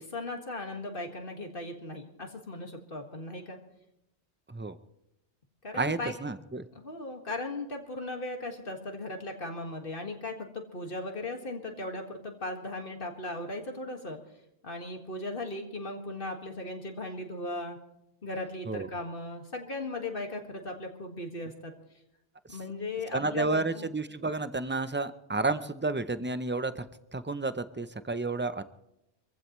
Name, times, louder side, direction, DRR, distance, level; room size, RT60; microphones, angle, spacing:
voice 1, 0.0-3.6 5.6-6.1 6.8-14.2 14.6-17.8 18.2-21.7 22.5-23.9, left 2 dB, 50° left, 3 dB, 2.0 m, -37 dB
voice 2, 5.7-6.6 18.7-18.9 23.1-26.9 27.1-28.6, right 3 dB, 20° right, 12 dB, 0.3 m, -31 dB
25.0 x 15.5 x 3.1 m, 0.84 s
omnidirectional pair, 1.2 m